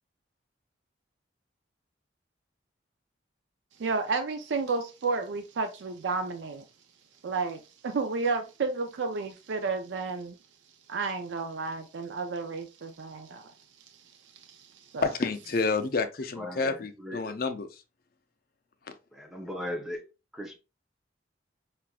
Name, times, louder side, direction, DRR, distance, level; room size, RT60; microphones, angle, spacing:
voice 1, 3.8-6.6 7.2-10.3 10.9-13.5 14.5-15.1, right 4 dB, 75° right, 0.4 m, -32 dB
voice 2, 15.0-17.7, left 4 dB, 50° left, 0.5 m, -29 dB
voice 3, 16.4-17.4 19.1-20.0 20.3-20.6, left 1 dB, ahead, 0.6 m, -38 dB
5.6 x 2.5 x 2.3 m
head